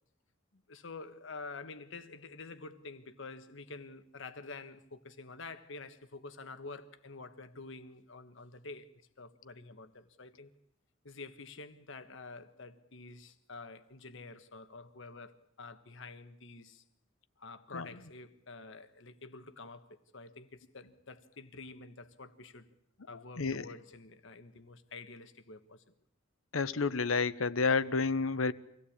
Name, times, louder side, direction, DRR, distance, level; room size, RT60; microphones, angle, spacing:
voice 1, 0.5-8.9 9.2-10.5 11.0-16.8 17.4-22.7 23.1-25.8, left 3 dB, 65° left, 1.4 m, -48 dB
voice 2, 26.5-28.5, left 4 dB, 85° left, 0.9 m, -30 dB
25.0 x 17.0 x 8.7 m
head